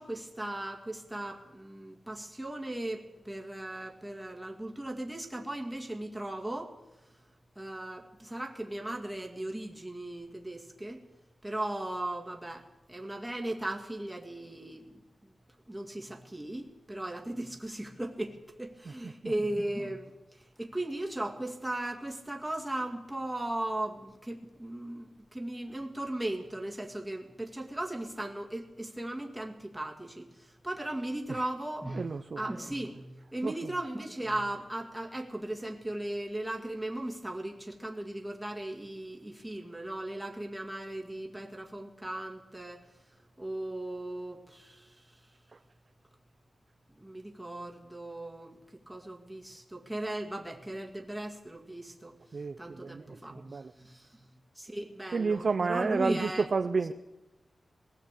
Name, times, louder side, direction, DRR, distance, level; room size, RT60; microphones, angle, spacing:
voice 1, 0.0-6.8 7.6-11.0 11.4-15.0 15.7-32.1 32.4-42.9 43.4-45.2 47.0-52.2 52.6-53.4 53.8-54.3 54.6-56.4, right 1 dB, 5° right, 2 dB, 2.1 m, -37 dB
voice 2, 31.9-32.5 33.4-33.5 45.5-45.6 52.3-53.7 55.1-56.9, right 4 dB, 45° right, 8 dB, 0.6 m, -31 dB
21.5 x 16.0 x 8.3 m, 1.0 s
wide cardioid pair, 170°, 0 cm